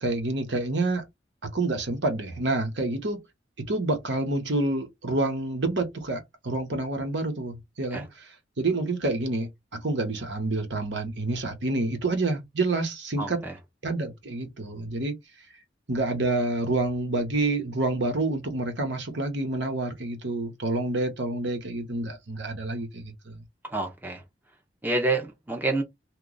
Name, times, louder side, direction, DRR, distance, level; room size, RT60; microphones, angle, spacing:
voice 1, 0.0-1.0 1.4-3.2 3.6-13.4 13.8-15.2 15.9-23.4, right 2 dB, 75° right, 1.0 m, -28 dB
voice 2, 13.2-13.5 23.6-24.2 24.8-25.8, right 2 dB, 10° right, 0.6 m, -28 dB
3.0 x 2.3 x 3.8 m
head